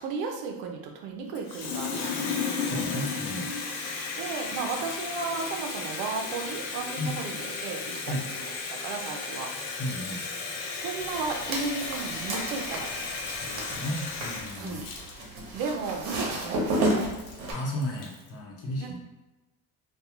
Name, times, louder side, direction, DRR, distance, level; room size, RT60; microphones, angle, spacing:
voice 1, 0.0-2.2 4.2-7.8 8.1-8.5 8.8-9.5 10.8-13.1 14.6-14.9 15.5-17.1 18.8-18.9, right 4 dB, 85° right, 2 dB, 0.6 m, -34 dB
Water tap faucet, 1.3-18.3, left 4 dB, 90° left, 0.6 m, -34 dB
voice 2, 2.6-3.5 7.0-7.2 8.1-8.2 9.8-10.2 13.4-14.8 17.5-19.0, left 1 dB, 35° left, -2 dB, 0.7 m, -34 dB
sound 1, 11.0-17.5, right 1 dB, 70° right, 0.9 m, -32 dB
2.3 x 2.3 x 2.9 m, 1.1 s
cardioid pair, 115°, 39 cm